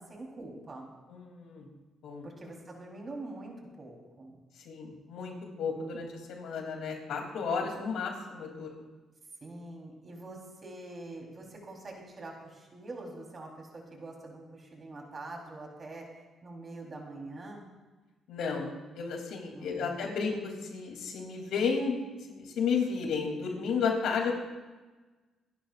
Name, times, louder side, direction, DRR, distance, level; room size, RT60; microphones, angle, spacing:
voice 1, 0.0-0.9 2.2-4.4 9.4-16.1 16.4-17.7 19.5-20.0, right 2 dB, 35° right, 0 dB, 3.8 m, -44 dB
voice 2, 1.1-1.7 2.0-2.3 4.6-8.8 18.3-24.5, left 5 dB, 80° left, 1 dB, 3.0 m, -33 dB
27.5 x 11.0 x 2.5 m, 1.2 s
cardioid pair, 90°, 0 cm